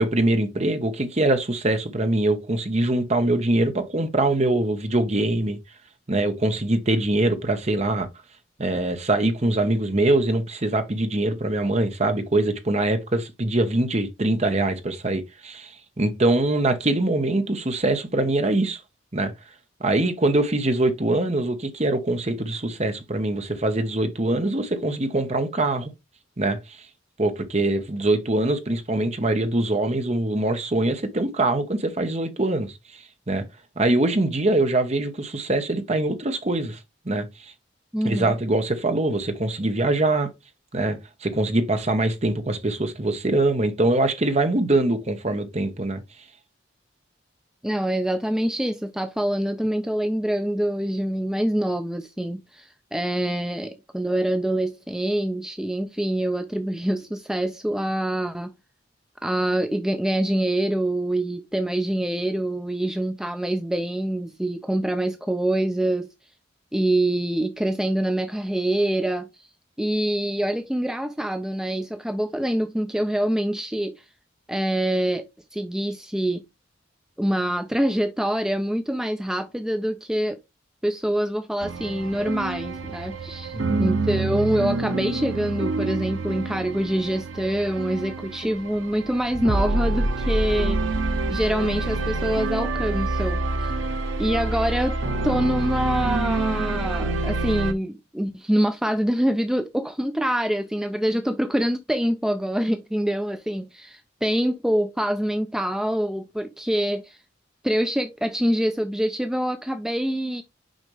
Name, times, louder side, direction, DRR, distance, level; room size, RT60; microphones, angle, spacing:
voice 1, 0.0-5.6 6.1-8.1 8.6-18.8 19.1-19.3 19.8-25.9 26.4-26.6 27.2-33.4 33.8-36.8 37.0-37.5 38.0-40.3 40.7-46.0 83.5-83.9, right 2 dB, 35° right, 1.1 m, -23 dB
voice 2, 37.9-38.4 47.6-58.5 59.2-66.1 66.7-69.5 69.8-74.1 74.5-76.4 77.2-80.4 80.8-93.7 94.2-95.0 95.2-107.2 107.6-110.4, right 1 dB, 5° right, 0.4 m, -25 dB
sound 1, 81.6-97.7, right 2 dB, 90° right, 0.8 m, -27 dB
6.4 x 5.1 x 3.2 m
head